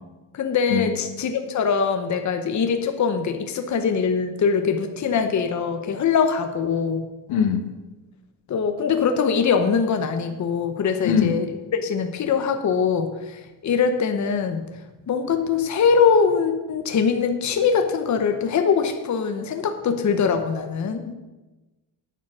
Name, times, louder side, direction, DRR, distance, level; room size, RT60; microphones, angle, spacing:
voice 1, 0.3-7.1 8.5-14.7 15.1-21.0, left 6 dB, 40° left, 6 dB, 0.9 m, -22 dB
voice 2, 7.3-7.6 11.0-11.4 21.1-21.2, left 7 dB, 85° left, 6 dB, 1.5 m, -22 dB
9.4 x 7.6 x 6.2 m, 1.1 s
cardioid pair, 140°, 46 cm